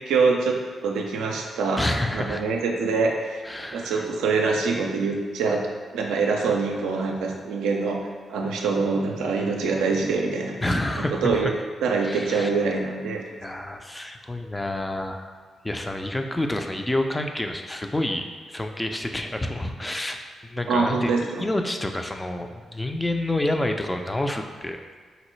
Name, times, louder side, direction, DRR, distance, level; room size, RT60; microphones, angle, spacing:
voice 1, 0.1-1.9 2.1-3.4 3.7-5.6 5.9-8.0 8.3-10.5 11.0-11.5 11.8-13.2 20.7-21.4, right 4 dB, 80° right, 1 dB, 0.4 m, -24 dB
voice 2, 1.8-2.4 3.4-4.0 10.6-11.5 12.0-12.5 13.4-15.3 15.6-24.8, left 1 dB, 20° left, 4 dB, 0.4 m, -28 dB
3.9 x 2.1 x 3.1 m, 1.5 s
hypercardioid pair, 40°, 0 cm